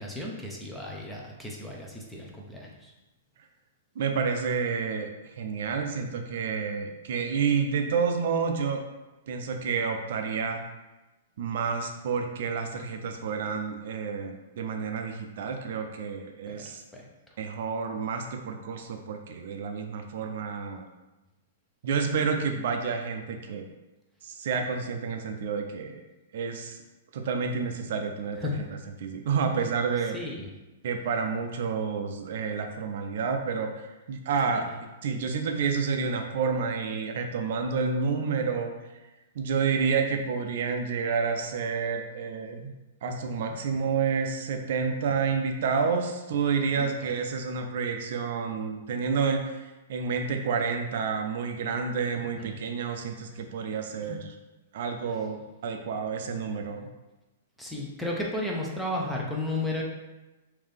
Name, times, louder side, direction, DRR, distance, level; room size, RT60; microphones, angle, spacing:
voice 1, 0.0-2.9 16.5-17.0 28.4-28.7 30.1-30.5 34.5-34.8 43.0-43.6 46.8-47.1 52.4-52.6 54.0-54.2 57.6-59.8, left 2 dB, 5° left, -3 dB, 0.6 m, -34 dB
voice 2, 4.0-5.1 5.4-8.8 9.3-10.6 11.4-16.8 17.4-20.9 21.8-23.7 24.2-26.0 26.3-26.8 27.1-28.4 29.0-30.2 30.8-34.7 35.0-38.7 39.4-42.7 43.0-54.3 54.7-55.4 55.6-56.9, right 5 dB, 60° right, 4 dB, 0.4 m, -29 dB
3.6 x 2.7 x 3.4 m, 1.1 s
hypercardioid pair, 145°, 0 cm